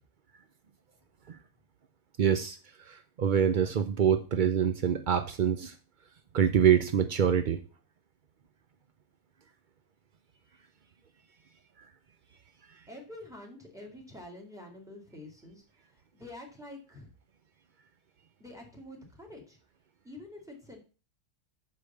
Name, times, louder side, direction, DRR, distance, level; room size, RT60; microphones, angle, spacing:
voice 1, 2.2-2.6 2.9-5.7 6.3-7.6, right 8 dB, 80° right, 8 dB, 0.4 m, -25 dB
voice 2, 12.9-17.1 18.4-19.6 20.0-20.8, left 1 dB, ahead, 1 dB, 2.1 m, -47 dB
6.6 x 4.9 x 6.8 m, 0.35 s
omnidirectional pair, 1.6 m